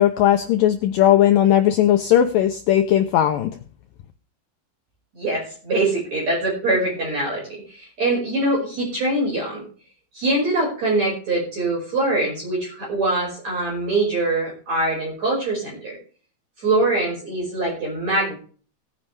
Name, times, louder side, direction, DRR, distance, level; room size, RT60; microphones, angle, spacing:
voice 1, 0.0-3.5, left 11 dB, 85° left, 6 dB, 2.0 m, -17 dB
voice 2, 5.2-9.6 10.1-16.0 16.6-18.3, right 2 dB, 40° right, -4 dB, 6.5 m, -23 dB
18.5 x 9.7 x 3.5 m, 0.41 s
omnidirectional pair, 5.0 m